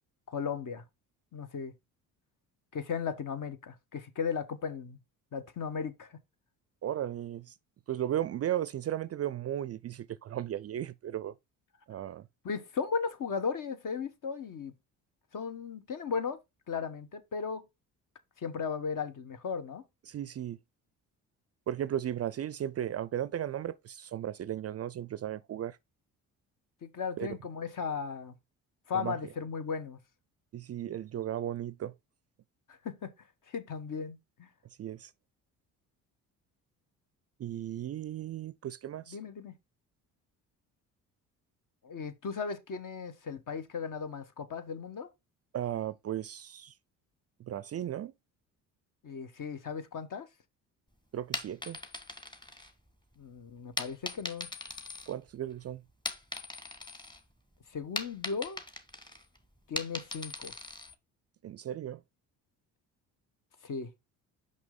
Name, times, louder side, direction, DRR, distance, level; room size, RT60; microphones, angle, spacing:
voice 1, 0.3-0.8 1.3-1.7 2.7-5.0 5.3-6.2 12.4-14.7 15.3-16.4 16.7-17.6 18.4-19.8 26.8-28.3 28.9-30.0 32.8-33.1 33.5-34.5 39.1-39.6 41.8-45.1 49.0-50.3 53.2-54.5 57.7-58.6 59.7-60.5 63.6-63.9, left 6 dB, 50° left, 1.3 m, -36 dB
voice 2, 6.8-7.5 7.9-11.3 11.9-12.3 20.1-20.6 21.7-25.8 27.2-27.3 28.9-29.2 30.5-31.9 34.8-35.1 37.4-39.2 45.5-46.7 47.4-48.1 51.1-51.8 55.1-55.8 61.4-62.0, right 11 dB, 40° right, 0.4 m, -35 dB
sound 1, 51.2-53.1 53.8-55.5 55.9-57.2 57.5-60.9, left 1 dB, 10° left, 1.5 m, -40 dB
6.0 x 5.5 x 3.9 m
hypercardioid pair, 55°, 42 cm